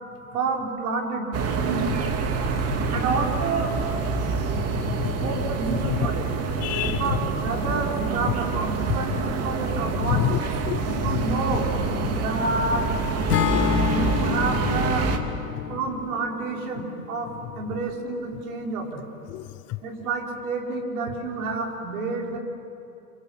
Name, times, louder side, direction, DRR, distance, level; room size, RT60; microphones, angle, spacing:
voice 1, 0.3-1.3 1.6-1.9 2.9-3.7 5.2-6.2 6.8-10.2 10.8-11.7 12.2-12.8 13.9-15.0 15.7-17.3 17.5-19.0 19.8-22.4, right 3 dB, 70° right, 0 dB, 5.6 m, -29 dB
sound 1, 1.3-15.2, right 4 dB, 30° right, 2.5 m, -27 dB
voice 2, 2.3-3.0 3.7-3.8 4.1-5.6 5.8-6.1 6.6-7.2 8.3-9.4 9.7-11.6 11.9-12.2 13.2-14.3 14.5-14.8 15.1-15.8 17.4-17.5 19.3-19.8, left 15 dB, 35° left, 14 dB, 0.7 m, -31 dB
Acoustic guitar / Strum, 13.3-17.5, left 8 dB, 80° left, 1.5 m, -28 dB
26.5 x 26.0 x 8.3 m, 2.7 s
hypercardioid pair, 105°, 46 cm